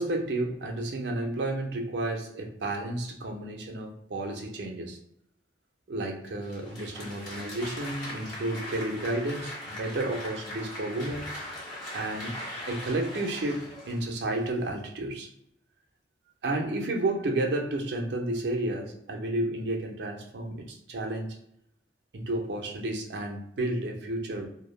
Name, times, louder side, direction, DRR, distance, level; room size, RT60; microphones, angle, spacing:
voice 1, 0.0-5.0 5.9-11.3 11.9-12.4 12.7-15.3 16.4-21.4 22.1-24.5, right 2 dB, 70° right, 1 dB, 0.5 m, -31 dB
Applause, 6.4-14.5, left 1 dB, 25° left, 1.0 m, -40 dB
2.2 x 2.0 x 3.0 m, 0.75 s
head